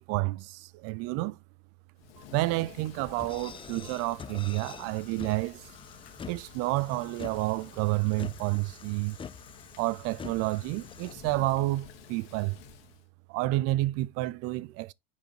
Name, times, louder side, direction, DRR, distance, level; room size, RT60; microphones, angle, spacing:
voice 1, 0.0-1.4 2.3-5.6 6.3-9.2 9.8-12.6 13.3-14.9, right 19 dB, 55° right, 0.5 m, -30 dB
Thunder / Rain, 2.0-13.1, left 9 dB, 70° left, 1.6 m, -51 dB
sound 1, 2.2-2.3 3.0-3.1 3.8-3.9 4.7-4.8 5.4-7.5, right 4 dB, 75° right, 1.5 m, -63 dB
sound 2, 2.7-11.1, left 6 dB, 15° left, 0.5 m, -46 dB
6.8 x 5.1 x 3.0 m
hypercardioid pair, 85°, 29 cm